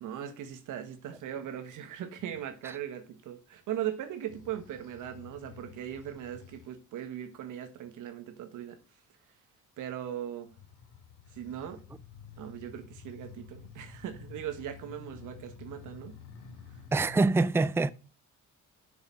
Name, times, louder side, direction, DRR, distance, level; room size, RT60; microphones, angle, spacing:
voice 1, 0.0-8.8 9.8-10.5 11.3-11.8 12.4-16.2, right 10 dB, 85° right, 1.4 m, -39 dB
sound 1, 2.2-2.5 4.3-6.7 10.5-17.3, left 6 dB, 80° left, 2.4 m, -50 dB
voice 2, 16.9-17.9, right 3 dB, 10° right, 0.5 m, -24 dB
6.8 x 6.6 x 7.3 m
cardioid pair, 90°, 30 cm